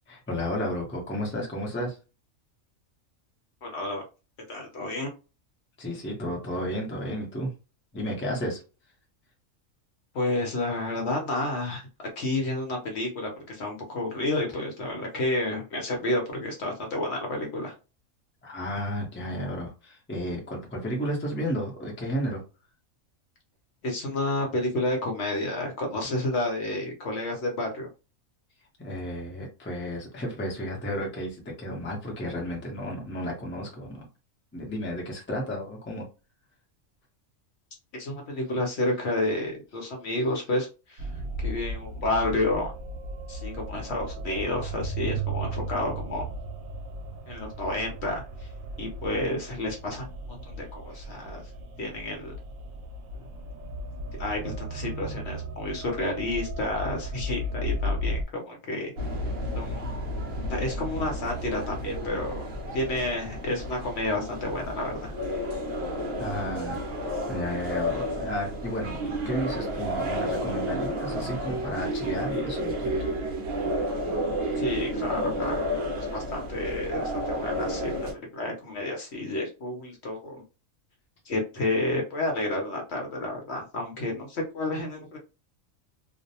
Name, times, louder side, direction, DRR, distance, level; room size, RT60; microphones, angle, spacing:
voice 1, 0.1-2.0 5.8-7.5 7.9-8.6 18.4-22.4 28.8-34.0 34.5-36.1 66.2-66.8 67.3-69.0 69.2-73.0, equal, 10° left, 0.6 m, -32 dB
voice 2, 3.6-4.0 4.5-5.1 10.1-11.9 12.2-17.7 23.8-27.9 37.9-41.1 41.4-42.7 43.3-46.2 47.3-48.5 48.8-51.4 51.8-52.3 54.2-58.9 59.5-59.9 60.5-62.5 62.7-65.1 74.6-80.4 81.2-85.2, left 2 dB, 60° left, 0.9 m, -30 dB
sound 1, 41.0-58.2, right 1 dB, 80° right, 1.0 m, -35 dB
sound 2, 59.0-78.1, equal, 55° right, 0.8 m, -31 dB
2.5 x 2.1 x 2.7 m
omnidirectional pair, 1.4 m